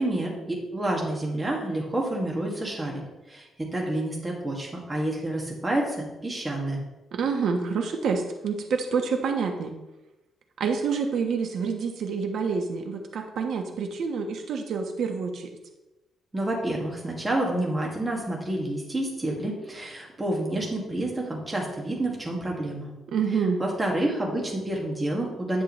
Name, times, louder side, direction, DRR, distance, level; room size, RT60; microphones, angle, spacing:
voice 1, 0.0-3.0 3.3-6.8 16.3-22.9 23.6-25.6, right 1 dB, 15° right, -1 dB, 2.0 m, -29 dB
voice 2, 7.1-9.8 10.6-15.5 23.1-23.6, right 5 dB, 65° right, 4 dB, 1.2 m, -27 dB
10.5 x 7.7 x 3.2 m, 1.0 s
cardioid pair, 155°, 0 cm